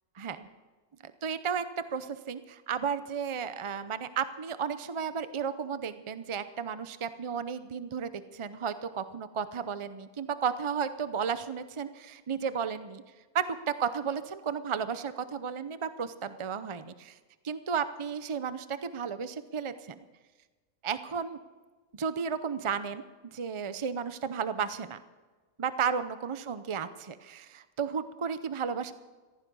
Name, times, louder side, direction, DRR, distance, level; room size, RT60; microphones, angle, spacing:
voice 1, 0.2-0.5 1.0-1.6 1.9-13.0 13.3-17.2 17.4-20.0 20.8-21.4 22.0-23.0 23.3-25.0 25.6-28.9, right 6 dB, 45° right, 12 dB, 0.3 m, -33 dB
16.5 x 15.0 x 5.4 m, 1.3 s
omnidirectional pair, 1.5 m